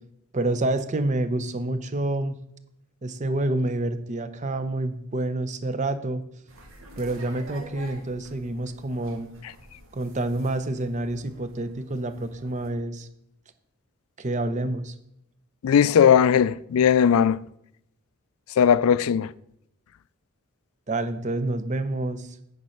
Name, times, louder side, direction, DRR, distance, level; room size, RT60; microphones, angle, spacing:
voice 1, 0.3-2.4 3.0-6.2 7.0-9.3 9.9-13.1 14.2-14.9 20.9-22.4, right 2 dB, 35° right, 0.6 m, -28 dB
sound 1, 6.5-12.7, right 1 dB, 65° right, 1.8 m, -48 dB
voice 2, 15.6-17.5 18.6-19.3, left 8 dB, 75° left, 0.3 m, -18 dB
9.2 x 5.4 x 5.7 m
head